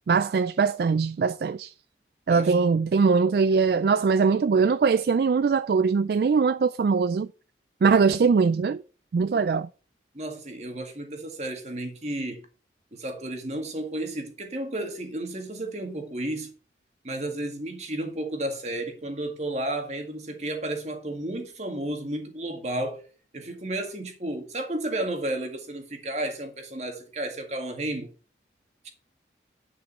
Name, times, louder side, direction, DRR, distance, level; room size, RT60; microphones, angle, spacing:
voice 1, 0.1-1.7 2.3-7.3 7.8-8.8 9.1-9.7, right 5 dB, 60° right, 0.3 m, -21 dB
voice 2, 10.1-12.4 12.9-16.5 17.0-23.0 23.3-28.1 28.8-28.9, right 1 dB, 40° right, 1.9 m, -32 dB
9.8 x 5.4 x 5.5 m
head